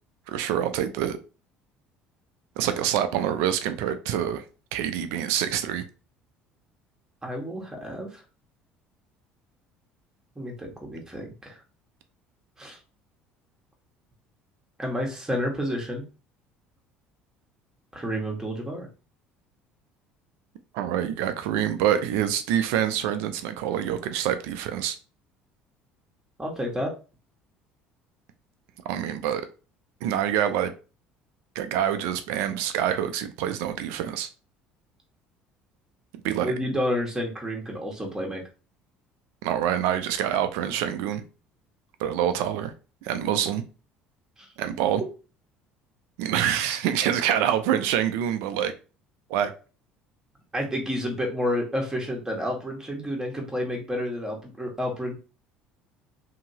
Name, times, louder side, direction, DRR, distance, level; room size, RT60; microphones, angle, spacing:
voice 1, 0.3-1.2 2.6-4.4 4.7-5.8 20.7-25.0 28.9-29.4 30.0-30.7 31.6-34.3 36.2-36.5 39.4-41.2 42.0-42.7 43.0-43.6 44.6-45.0 46.2-48.7 49.3-49.5, right 10 dB, 80° right, 0.5 m, -26 dB
voice 2, 7.2-8.1 10.3-11.6 12.6-12.8 14.8-16.0 17.9-18.9 26.4-26.9 36.4-38.4 44.4-44.5 50.5-55.2, equal, 15° right, 1.3 m, -30 dB
2.9 x 2.8 x 2.8 m
supercardioid pair, 85°, 4 cm